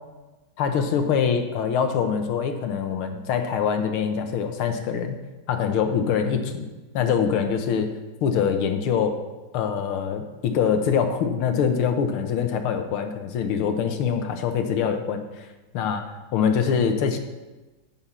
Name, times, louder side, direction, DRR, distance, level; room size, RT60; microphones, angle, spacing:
voice 1, 0.6-5.2 5.5-6.7 6.9-7.9 8.2-9.2 9.5-15.5 15.7-17.2, left 7 dB, 75° left, 6 dB, 1.8 m, -24 dB
9.9 x 8.6 x 4.2 m, 1.1 s
omnidirectional pair, 2.4 m